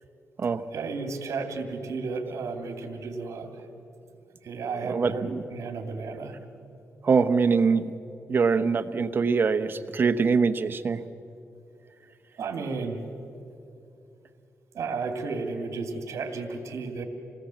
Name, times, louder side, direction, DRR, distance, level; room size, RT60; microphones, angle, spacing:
voice 1, 0.7-3.6 4.4-6.4 12.4-13.0 14.7-17.0, right 4 dB, 70° right, 4 dB, 2.7 m, -33 dB
voice 2, 4.8-5.4 7.0-7.9 8.3-11.0, right 5 dB, 40° right, 8 dB, 0.9 m, -23 dB
27.0 x 19.0 x 7.8 m, 2.6 s
wide cardioid pair, 145°, 5 cm